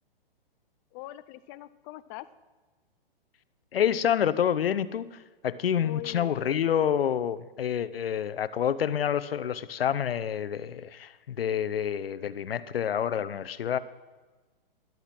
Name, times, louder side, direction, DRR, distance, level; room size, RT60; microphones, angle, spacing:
voice 1, 0.9-2.3 5.8-6.5, left 17 dB, 20° left, 15 dB, 0.4 m, -42 dB
voice 2, 3.7-13.8, left 9 dB, 75° left, 16 dB, 0.8 m, -28 dB
13.0 x 11.0 x 6.0 m, 1.3 s
hypercardioid pair, 130°, 29 cm